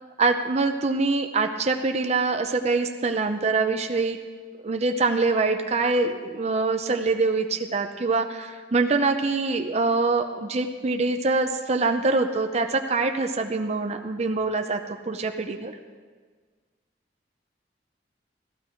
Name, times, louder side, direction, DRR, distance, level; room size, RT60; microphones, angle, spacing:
voice 1, 0.2-4.2 4.6-14.8 15.1-15.7, right 3 dB, 35° right, 6 dB, 0.6 m, -24 dB
15.5 x 14.0 x 4.5 m, 1.5 s
head